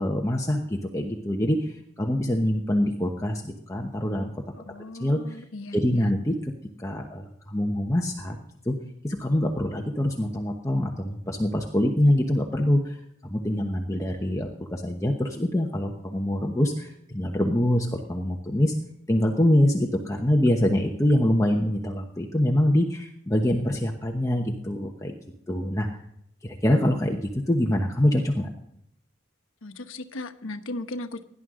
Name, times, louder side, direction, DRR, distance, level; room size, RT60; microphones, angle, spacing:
voice 1, 0.0-4.3 5.0-5.4 5.7-6.5 6.8-8.4 8.6-8.7 9.0-13.0 13.3-18.7 19.1-25.1 25.5-25.9 26.4-28.5, left 1 dB, 15° left, 2 dB, 1.0 m, -25 dB
voice 2, 4.5-6.1 29.6-31.2, left 2 dB, 90° left, 8 dB, 1.1 m, -37 dB
17.5 x 11.0 x 3.8 m, 0.75 s
head